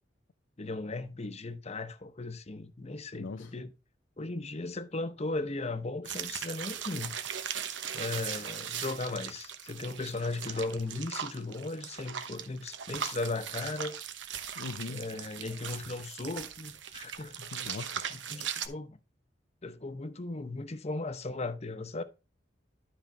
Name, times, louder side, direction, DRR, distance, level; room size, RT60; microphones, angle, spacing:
voice 1, 0.6-3.7 4.2-7.2 7.9-13.9 14.9-17.5 18.1-19.0 19.6-22.0, left 2 dB, 35° left, 0.8 m, -37 dB
voice 2, 3.2-3.5 14.6-15.0 17.5-18.0, left 4 dB, 90° left, 0.5 m, -40 dB
sound 1, 6.0-18.7, right 8 dB, 85° right, 1.0 m, -39 dB
12.0 x 5.2 x 3.3 m
head